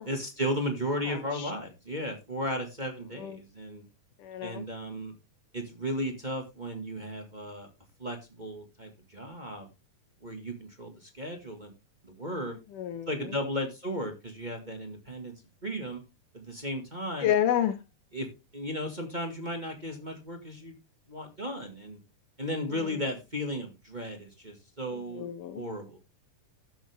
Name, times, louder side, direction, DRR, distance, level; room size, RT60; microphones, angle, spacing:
voice 1, 0.0-3.8 4.4-5.1 5.5-7.7 8.0-9.7 10.2-11.7 12.0-12.5 13.1-15.3 15.6-16.0 16.3-17.3 18.1-18.3 18.5-20.7 21.1-22.0 22.4-26.0, equal, 20° right, 2 dB, 1.2 m, -35 dB
voice 2, 1.0-1.5 3.2-3.4 4.2-4.7 12.5-13.4 17.2-17.8 22.7-22.9 24.9-25.6, left 10 dB, 75° left, 8 dB, 2.4 m, -31 dB
12.5 x 7.9 x 3.5 m, 0.25 s
omnidirectional pair, 3.8 m